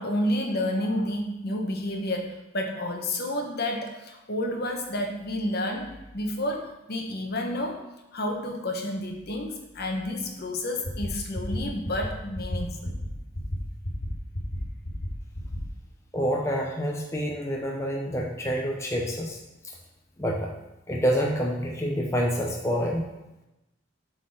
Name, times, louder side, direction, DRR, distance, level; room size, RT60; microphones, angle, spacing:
voice 1, 0.0-7.8 8.1-13.0, left 1 dB, 50° left, 2 dB, 1.2 m, -30 dB
sound 1, 10.8-11.1 11.3-11.6 11.8-12.1 12.3-12.6 12.8-13.1 13.3-13.6 13.8-14.1 14.3-14.6 14.8-15.1 15.3-15.6, left 1 dB, 75° left, 2.3 m, -31 dB
voice 2, 16.1-19.4 20.2-20.5 20.9-23.1, equal, 15° left, -1 dB, 0.7 m, -27 dB
7.7 x 4.0 x 6.4 m, 0.97 s
head